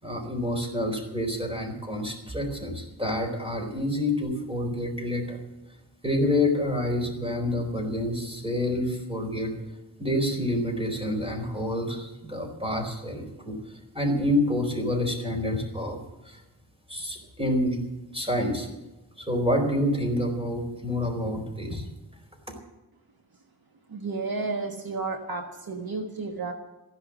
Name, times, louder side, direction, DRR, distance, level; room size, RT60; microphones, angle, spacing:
voice 1, 0.0-5.4 6.0-9.5 10.0-13.5 13.9-16.0 16.2-16.4 16.9-17.8 18.1-18.7 19.2-21.8, left 1 dB, 15° right, 3 dB, 4.5 m, -28 dB
voice 2, 23.9-26.5, right 3 dB, 60° right, 4 dB, 1.5 m, -32 dB
15.0 x 11.5 x 7.5 m, 1.0 s
wide cardioid pair, 105°, 41 cm